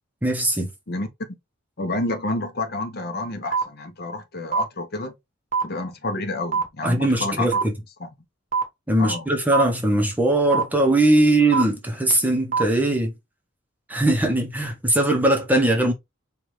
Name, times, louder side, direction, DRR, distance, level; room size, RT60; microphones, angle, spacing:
voice 1, 0.2-0.7 6.8-7.7 8.9-13.1 13.9-15.9, right 1 dB, 10° right, 0.8 m, -20 dB
voice 2, 1.8-5.1 5.6-7.5 8.0-8.1 9.0-9.3, left 2 dB, 50° left, 0.8 m, -29 dB
sound 1, 3.5-3.6 4.5-4.6 5.5-5.6 6.5-6.6 7.5-7.6 8.5-8.6 9.5-9.6 10.5-10.6 11.5-11.6 12.5-12.6, right 5 dB, 40° right, 0.9 m, -21 dB
4.7 x 2.4 x 3.1 m
head